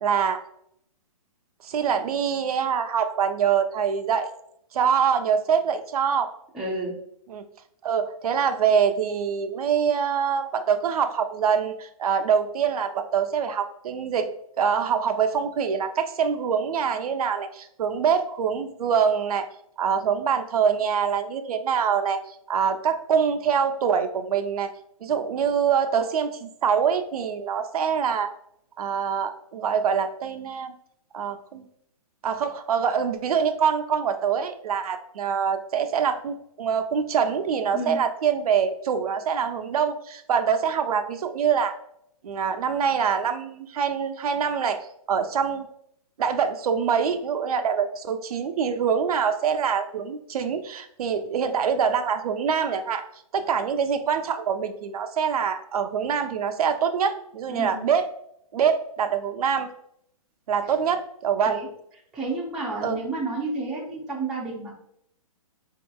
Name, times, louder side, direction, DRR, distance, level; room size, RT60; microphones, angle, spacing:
voice 1, 0.0-0.4 1.6-4.3 4.7-6.3 7.3-7.4 7.8-14.3 14.6-19.5 19.8-22.2 22.5-24.7 25.0-28.3 28.8-30.7 31.1-31.7 32.2-41.8 42.2-44.8 45.1-45.7 46.2-53.1 53.3-58.1 58.5-59.7 60.5-61.6 62.8-63.0, right 7 dB, 80° right, 8 dB, 0.4 m, -24 dB
voice 2, 6.5-6.9 37.7-38.1 57.5-57.8 61.5-61.7 62.1-64.8, right 2 dB, ahead, -6 dB, 0.3 m, -31 dB
3.7 x 2.8 x 2.2 m, 0.73 s
hypercardioid pair, 145°, 19 cm